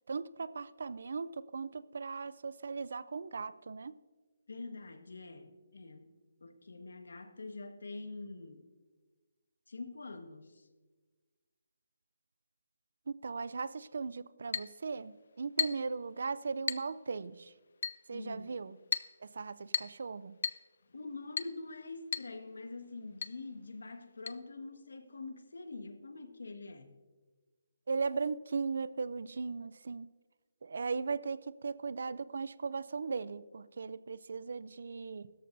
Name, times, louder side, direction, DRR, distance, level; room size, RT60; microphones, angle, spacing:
voice 1, 0.1-4.0 13.1-17.5 18.1-18.8 19.2-20.4 27.9-30.1 30.6-35.3, right 4 dB, 60° right, 17 dB, 0.4 m, -38 dB
voice 2, 4.5-6.1 6.4-8.6 9.7-10.7 18.1-18.6 20.9-27.0, left 3 dB, 85° left, 7 dB, 1.4 m, -45 dB
Chink clink, 14.5-14.7 15.6-15.9 16.7-16.9 17.8-18.0 18.9-19.1 19.7-20.0 20.4-20.6 21.4-21.6 22.1-22.3 22.6-22.7 23.2-23.4 24.3-24.4, left 5 dB, 55° left, 0.4 m, -34 dB
16.5 x 13.5 x 2.6 m, 1.3 s
hypercardioid pair, 170°, 0 cm